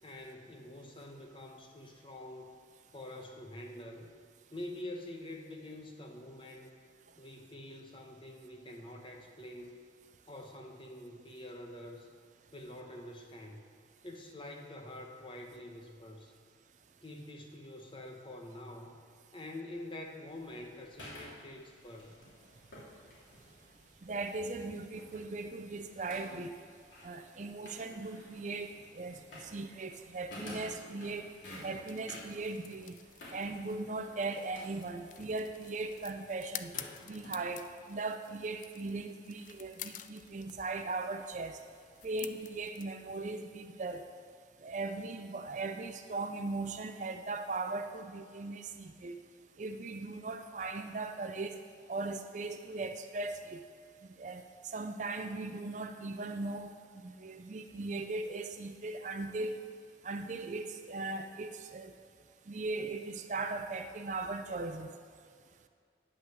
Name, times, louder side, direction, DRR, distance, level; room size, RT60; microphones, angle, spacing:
voice 1, 0.0-2.5 2.9-4.1 4.5-6.8 7.2-9.8 10.3-12.1 12.5-13.6 14.0-16.3 17.0-19.0 19.3-22.1, left 1 dB, 30° left, 2 dB, 0.9 m, -46 dB
sound 1, 20.3-37.9, left 1 dB, 90° left, 3.0 m, -53 dB
voice 2, 24.1-26.5 27.0-29.2 29.4-31.3 31.6-33.0 33.3-36.7 37.0-41.6 42.0-44.0 44.6-49.2 49.6-51.6 51.9-53.6 54.2-54.4 54.7-56.7 57.0-59.6 60.0-61.9 62.5-64.9, right 3 dB, 40° right, 8 dB, 0.4 m, -38 dB
sound 2, 31.9-42.8, left 12 dB, 45° left, 0.3 m, -50 dB
9.7 x 5.9 x 7.6 m, 2.1 s
head